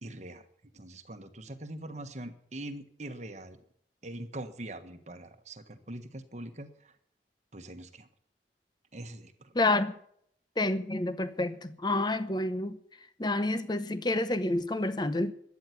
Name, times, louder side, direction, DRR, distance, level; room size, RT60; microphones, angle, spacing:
voice 1, 0.0-0.5 0.7-3.6 4.0-6.9 7.5-8.1 8.9-9.5, right 1 dB, 40° right, 1.4 m, -43 dB
voice 2, 9.5-9.9 10.6-12.8 13.2-15.3, left 2 dB, 25° left, 0.9 m, -29 dB
13.0 x 9.7 x 9.4 m
head